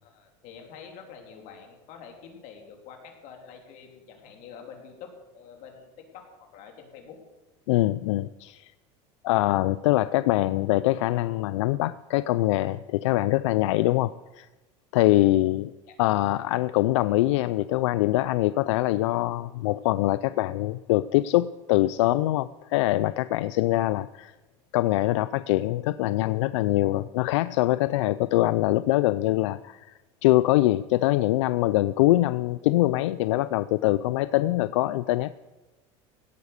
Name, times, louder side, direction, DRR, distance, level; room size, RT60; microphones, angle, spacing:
voice 1, 0.0-7.2 15.8-15.9, left 6 dB, 60° left, 2 dB, 3.4 m, -47 dB
voice 2, 7.7-8.7 9.2-14.5 14.9-15.7 16.0-24.3 24.7-35.3, left 16 dB, 90° left, 15 dB, 0.4 m, -23 dB
16.5 x 8.2 x 6.6 m, 1.1 s
supercardioid pair, 115°, 15 cm